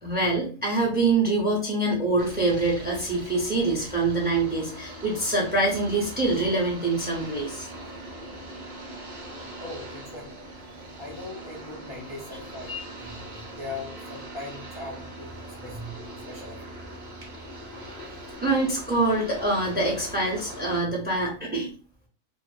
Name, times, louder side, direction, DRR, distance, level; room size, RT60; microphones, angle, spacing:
voice 1, 0.0-7.7 12.7-12.8 18.4-21.7, right 2 dB, 10° right, -2 dB, 0.5 m, -25 dB
sound 1, 2.2-20.8, right 1 dB, 35° right, 0.9 m, -41 dB
voice 2, 9.2-10.3 11.0-12.7 13.5-15.3 15.6-15.8 16.3-16.6, left 3 dB, 40° left, -4 dB, 0.4 m, -40 dB
2.5 x 2.5 x 2.4 m, 0.40 s
omnidirectional pair, 1.4 m